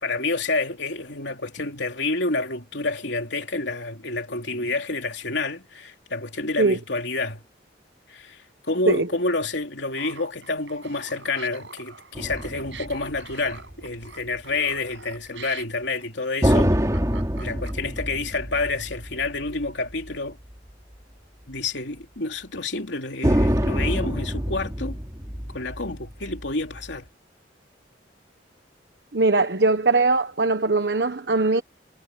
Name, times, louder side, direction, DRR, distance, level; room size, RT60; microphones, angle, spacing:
voice 1, 0.0-7.4 8.1-8.4 8.7-16.7 17.4-20.4 21.5-25.0 25.5-27.1, left 3 dB, 80° left, 3.2 m, -29 dB
Laughter, 9.9-18.0, right 5 dB, 85° right, 7.7 m, -44 dB
sound 1, 12.1-14.1 16.4-20.1 20.5-20.6 23.2-26.9, equal, 20° right, 3.0 m, -26 dB
voice 2, 29.1-31.6, right 3 dB, 65° right, 1.2 m, -20 dB
head